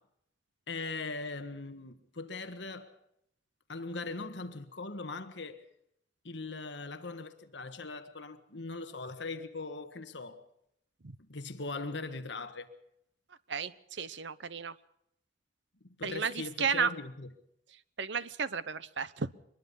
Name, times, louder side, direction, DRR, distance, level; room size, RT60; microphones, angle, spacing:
voice 1, 0.7-3.0 3.7-5.6 6.2-10.4 11.2-12.7 16.0-17.3, left 3 dB, 65° left, 1.5 m, -40 dB
voice 2, 13.5-14.7 16.0-16.9 18.0-19.3, right 6 dB, 70° right, 0.9 m, -33 dB
24.0 x 21.0 x 5.5 m
head